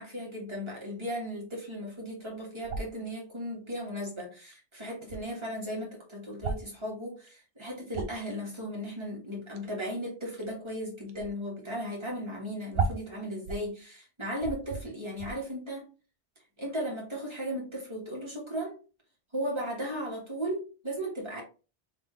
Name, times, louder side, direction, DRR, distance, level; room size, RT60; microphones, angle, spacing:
voice 1, 0.0-15.9 16.6-18.8 19.3-21.4, equal, 25° right, 1.8 m, -36 dB
sound 1, 2.6-3.0 4.2-4.3 4.5-4.6 4.9-5.2 6.3-6.7 7.3-7.4 7.7-8.3 9.5-9.7 10.4-10.7 11.1-11.3 11.7-11.8 12.1-12.2 12.7-13.7 14.0-14.1 14.4-14.8 15.1-15.3, right 4 dB, 65° right, 0.9 m, -34 dB
3.7 x 3.4 x 3.2 m
omnidirectional pair, 1.1 m